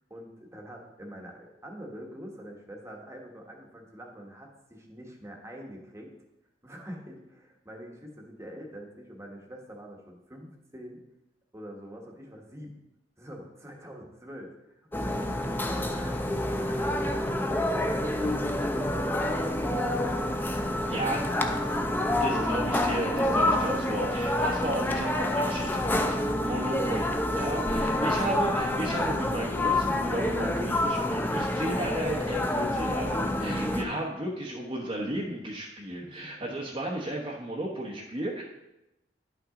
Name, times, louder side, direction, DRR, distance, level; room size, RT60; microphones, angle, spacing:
voice 1, 0.1-6.1 6.6-11.0 11.5-12.8 13.2-20.2 20.7-21.2 21.6-22.0 27.7-28.3 33.9-34.1 36.0-36.5, equal, 15° right, 0 dB, 1.3 m, -45 dB
sound 1, 14.9-33.8, left 1 dB, 10° left, 0.6 m, -28 dB
voice 2, 20.9-21.2 22.2-38.4, right 1 dB, 30° right, -2 dB, 1.1 m, -34 dB
11.0 x 5.8 x 3.8 m, 0.91 s
head